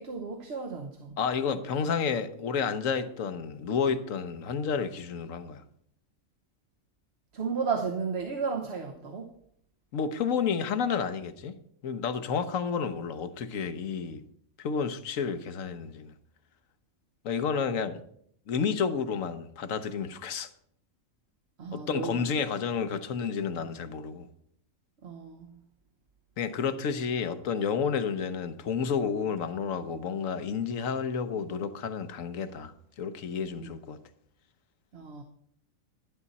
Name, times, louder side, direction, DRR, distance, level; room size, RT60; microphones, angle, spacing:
voice 1, 0.0-1.2 7.3-9.3 21.6-22.2 23.5-23.6 25.0-25.6 33.6-33.7 34.9-35.2, right 5 dB, 55° right, 1.1 m, -34 dB
voice 2, 1.2-5.6 9.9-11.6 11.8-14.2 14.6-16.1 17.2-18.0 18.5-20.5 21.7-24.3 26.4-34.0, left 6 dB, 75° left, 1.3 m, -30 dB
11.0 x 11.0 x 4.1 m
omnidirectional pair, 1.4 m